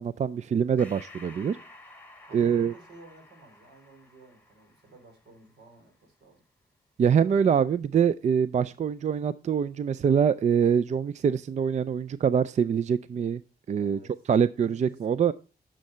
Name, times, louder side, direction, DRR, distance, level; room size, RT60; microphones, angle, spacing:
voice 1, 0.0-1.6 2.3-2.7 7.0-13.4 13.7-14.0 14.3-15.3, right 7 dB, 45° right, 0.4 m, -24 dB
Breathing, 0.8-5.7, left 2 dB, 10° left, 1.2 m, -52 dB
voice 2, 2.3-6.4 7.0-7.6 8.5-8.8 13.8-14.2 14.6-15.0, right 2 dB, 85° right, 3.0 m, -53 dB
10.5 x 6.4 x 4.3 m
cardioid pair, 100°, 17 cm